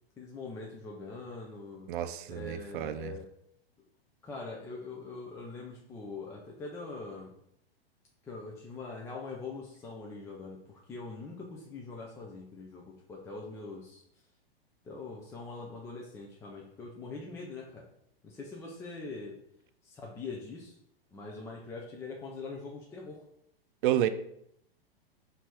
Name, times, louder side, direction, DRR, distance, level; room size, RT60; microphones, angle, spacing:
voice 1, 0.2-1.9 2.3-3.3 4.2-7.3 8.2-14.0 14.8-17.9 18.2-19.4 19.8-20.8 21.1-23.2, left 3 dB, 10° left, 0.3 m, -43 dB
voice 2, 1.9-3.1 23.8-24.1, right 12 dB, 55° right, 0.5 m, -30 dB
4.3 x 2.7 x 4.3 m
hypercardioid pair, 120°, 30 cm